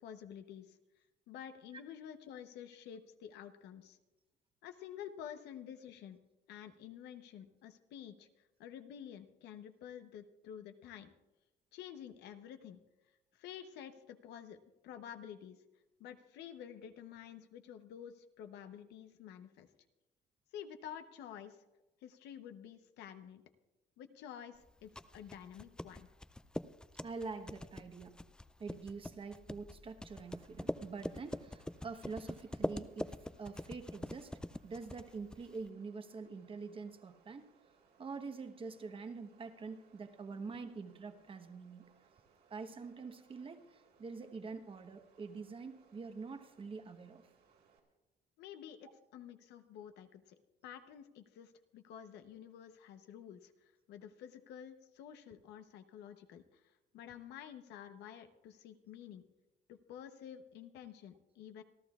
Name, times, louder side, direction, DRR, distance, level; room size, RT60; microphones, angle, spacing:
voice 1, 0.0-0.8 1.3-4.0 4.6-6.2 6.5-8.3 8.6-11.1 11.7-12.8 13.3-14.6 14.8-15.6 16.0-19.7 20.5-21.6 22.0-23.4 24.0-26.1 48.4-50.4 50.6-56.6 56.9-59.2 59.7-61.6, left 9 dB, 80° left, 8 dB, 0.9 m, -50 dB
sound 1, 24.6-35.7, left 1 dB, 5° left, 0.3 m, -44 dB
voice 2, 27.0-28.2 28.6-34.3 34.6-37.5 38.0-41.9 42.5-47.2, right 4 dB, 30° right, 8 dB, 1.1 m, -46 dB
sound 2, 30.1-47.8, right 6 dB, 70° right, 2.7 m, -70 dB
27.5 x 12.0 x 2.4 m, 1.0 s
cardioid pair, 110°, 17 cm